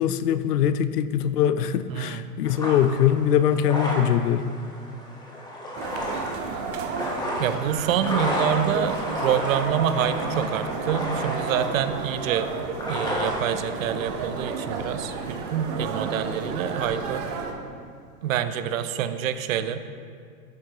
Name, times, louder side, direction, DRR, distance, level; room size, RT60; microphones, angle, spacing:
voice 1, 0.0-4.5, left 9 dB, 70° left, 13 dB, 0.6 m, -22 dB
sound 1, 2.4-17.1, equal, 10° left, 1.3 m, -33 dB
sound 2, 5.7-17.5, right 5 dB, 30° right, 0.9 m, -32 dB
voice 2, 7.4-12.5 12.9-17.3 18.2-19.8, right 9 dB, 55° right, 11 dB, 0.7 m, -27 dB
12.5 x 7.2 x 3.0 m, 2.1 s
hypercardioid pair, 135°, 49 cm